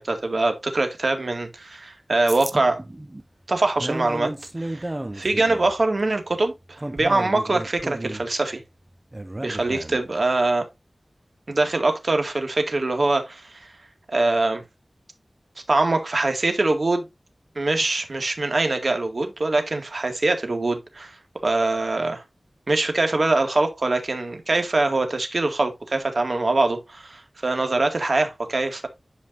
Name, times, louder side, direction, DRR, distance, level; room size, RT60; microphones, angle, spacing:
voice 1, 0.0-2.8 3.5-4.3 4.6-8.6 9.4-10.6 11.5-13.7 14.1-14.6 15.7-17.1 17.6-21.2 21.4-22.2 22.7-28.9, right 2 dB, 60° right, 2.0 m, -23 dB
sound 1, 2.3-10.2, right 1 dB, 30° right, 1.0 m, -34 dB
10.5 x 5.1 x 2.6 m
wide cardioid pair, 70°, 0 cm